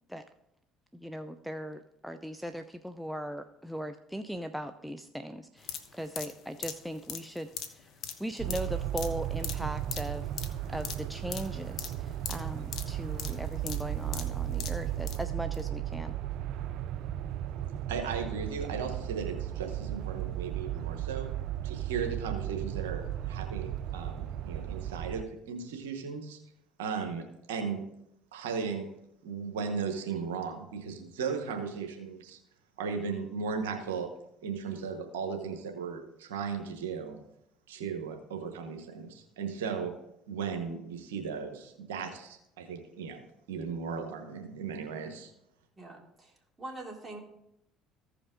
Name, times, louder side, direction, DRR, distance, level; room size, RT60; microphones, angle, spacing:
voice 1, 0.9-7.5 8.2-10.2 10.7-16.2, equal, ahead, 8 dB, 0.5 m, -39 dB
sound 1, 5.6-15.2 15.5-15.6, left 8 dB, 60° left, 1.0 m, -41 dB
sound 2, 8.4-25.3, right 12 dB, 65° right, 0.4 m, -35 dB
voice 2, 17.9-21.3 21.6-26.4 26.8-27.8 28.3-28.9 29.2-32.4 32.8-34.1 34.4-37.2 37.7-39.9 40.3-43.2 43.5-45.3, right 5 dB, 90° right, 4 dB, 1.1 m, -36 dB
voice 3, 45.8-46.3 46.6-47.2, right 2 dB, 20° right, -1 dB, 3.2 m, -43 dB
15.0 x 5.1 x 3.7 m, 0.80 s
hypercardioid pair, 70°, 0 cm